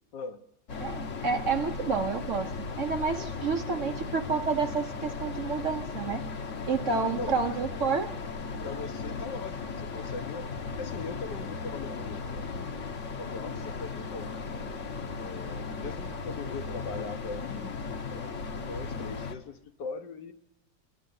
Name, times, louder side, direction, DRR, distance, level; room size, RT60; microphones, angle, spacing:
voice 1, 0.1-0.4 3.1-3.3 3.7-3.9 6.9-7.6 8.6-10.5 10.8-12.8 13.2-14.7 15.2-18.4 18.7-20.3, left 4 dB, 70° left, 8 dB, 1.7 m, -40 dB
sound 1, 0.7-19.3, left 4 dB, 45° left, 1.3 m, -36 dB
voice 2, 0.8-6.2 6.6-8.1, right 5 dB, 55° right, 6 dB, 1.0 m, -29 dB
28.0 x 9.9 x 9.4 m, 0.91 s
omnidirectional pair, 1.9 m